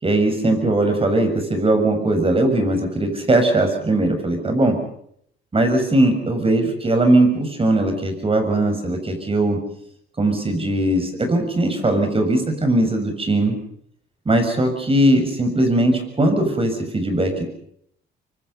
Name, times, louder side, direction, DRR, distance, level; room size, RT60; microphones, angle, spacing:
voice 1, 0.0-4.8 5.5-9.6 10.2-13.6 14.3-17.4, right 1 dB, 30° right, 6 dB, 7.0 m, -19 dB
25.0 x 24.5 x 5.7 m, 0.69 s
cardioid pair, 90°, 20 cm